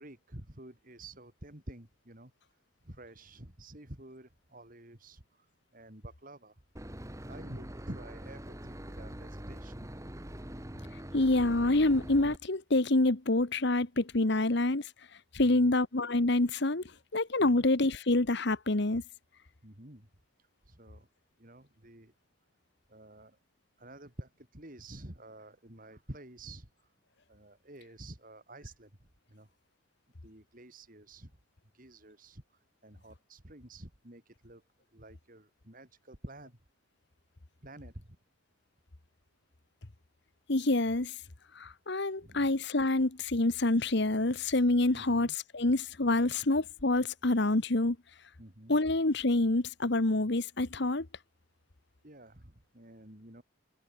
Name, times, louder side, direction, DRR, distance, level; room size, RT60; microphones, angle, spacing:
voice 1, 0.0-2.3 2.8-5.5 5.7-6.6 7.3-9.9 15.4-15.7 17.4-17.6 19.6-20.1 20.6-21.1 21.4-22.1 22.9-23.4 23.8-26.7 27.3-28.9 29.3-29.5 30.2-31.3 31.7-32.4 32.8-34.6 34.9-36.6 37.6-38.1 42.2-42.5 44.9-45.3 48.4-48.8 52.0-53.4, right 1 dB, 40° right, 3.2 m, -49 dB
Boat Water vehicle / Engine, 6.8-12.4, equal, 15° right, 2.0 m, -44 dB
voice 2, 11.1-14.8 15.3-16.8 17.1-19.0 40.5-41.1 41.6-48.0 48.7-51.1, left 2 dB, 55° left, 1.2 m, -27 dB
head